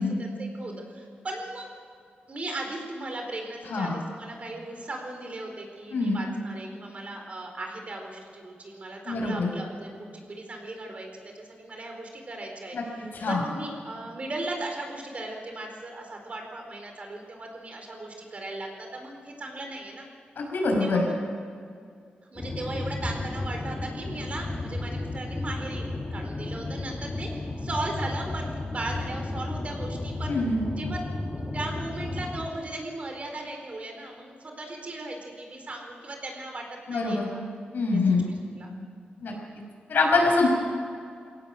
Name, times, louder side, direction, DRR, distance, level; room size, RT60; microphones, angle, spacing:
voice 1, 0.0-1.7 2.3-20.0 20.8-21.3 22.3-30.3 30.7-31.0 31.4-37.4 37.9-38.7, right 2 dB, 40° right, 2 dB, 4.3 m, -37 dB
voice 2, 5.9-6.2 9.0-9.5 12.7-13.4 20.4-21.0 30.3-30.6 36.9-37.3 37.7-38.3 39.2-39.3 39.9-40.5, left 3 dB, 70° left, 1 dB, 6.2 m, -24 dB
sound 1, 22.4-32.5, left 2 dB, 25° left, 1.9 m, -33 dB
23.0 x 17.5 x 7.8 m, 2.3 s
wide cardioid pair, 110°, 3 cm